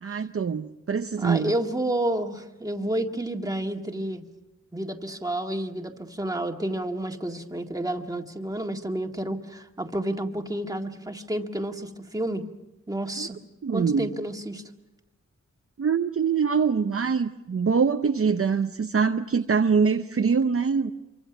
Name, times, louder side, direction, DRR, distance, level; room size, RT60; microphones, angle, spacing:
voice 1, 0.0-1.6 13.2-13.3 13.6-14.1 15.8-20.9, right 5 dB, 50° right, 6 dB, 0.8 m, -24 dB
voice 2, 1.2-4.2 4.7-12.4 12.9-13.4 13.7-14.6, right 1 dB, 10° right, 3 dB, 1.9 m, -30 dB
27.0 x 24.0 x 6.1 m, 0.98 s
wide cardioid pair, 100°, 30 cm